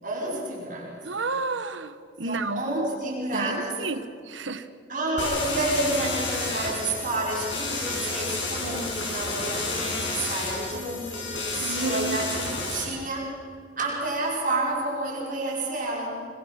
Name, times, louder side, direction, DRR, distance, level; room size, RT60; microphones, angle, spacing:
voice 1, 0.0-1.0 2.2-3.9 4.9-13.4 13.8-16.3, right 2 dB, 45° right, -4 dB, 5.6 m, -30 dB
voice 2, 1.0-2.8 3.3-4.0 4.3-4.6 11.6-12.6, right 3 dB, 90° right, 11 dB, 1.4 m, -31 dB
sound 1, 5.2-12.8, left 3 dB, 85° left, 6.9 m, -31 dB
25.5 x 23.5 x 6.0 m, 2.4 s
head